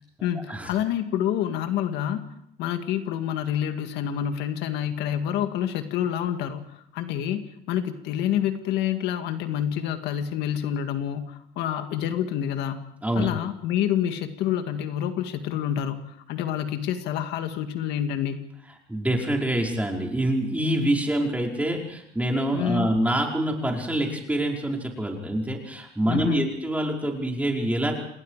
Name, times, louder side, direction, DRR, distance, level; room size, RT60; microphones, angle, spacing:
voice 1, 0.2-7.4 7.7-12.8 13.2-18.5 22.5-22.9 26.1-26.5, left 10 dB, 90° left, 7 dB, 2.0 m, -28 dB
voice 2, 18.9-27.9, right 1 dB, 10° right, 0 dB, 5.3 m, -26 dB
28.5 x 20.0 x 5.0 m, 0.73 s
cardioid pair, 110°, 17 cm